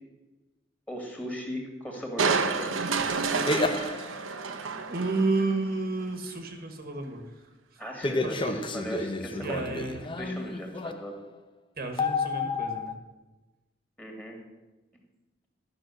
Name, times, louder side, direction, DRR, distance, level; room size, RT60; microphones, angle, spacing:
voice 1, 0.9-2.7 7.8-9.8 10.2-11.1 14.0-14.4, equal, 10° left, 1 dB, 2.3 m, -38 dB
Crushing, 2.2-5.6 6.0-6.1, right 4 dB, 85° right, 0.9 m, -29 dB
sound 1, 3.0-4.3 8.0-11.2 12.0-12.9, left 3 dB, 25° left, 0.7 m, -31 dB
voice 2, 3.2-3.8 4.9-7.5 8.2-8.5 9.4-10.0 11.8-12.9, right 3 dB, 50° right, 5 dB, 1.4 m, -31 dB
12.0 x 6.2 x 7.6 m, 1.1 s
head